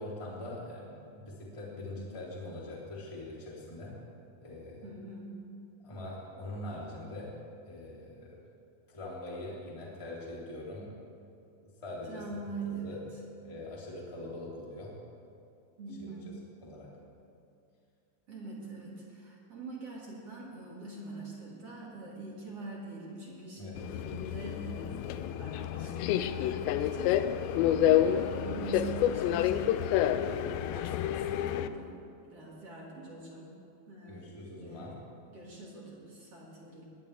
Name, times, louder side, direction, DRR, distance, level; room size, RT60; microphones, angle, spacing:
voice 1, 0.0-4.0 4.4-4.8 5.8-7.3 7.6-8.4 8.9-10.9 11.6-12.2 12.6-13.0 13.4-14.9 16.0-16.1 16.6-16.9 23.6-23.7 27.5-28.1 34.1-35.0, left 1 dB, 10° left, -5 dB, 2.6 m, -43 dB
voice 2, 4.8-5.4 12.1-13.0 15.8-16.4 18.3-31.9 32.3-33.5 33.9-34.9 35.3-36.9, right 3 dB, 40° right, -4 dB, 2.5 m, -44 dB
Subway metro underground, 23.8-31.7, left 11 dB, 80° left, 2.6 m, -29 dB
21.5 x 19.5 x 3.5 m, 2.5 s
omnidirectional pair, 5.4 m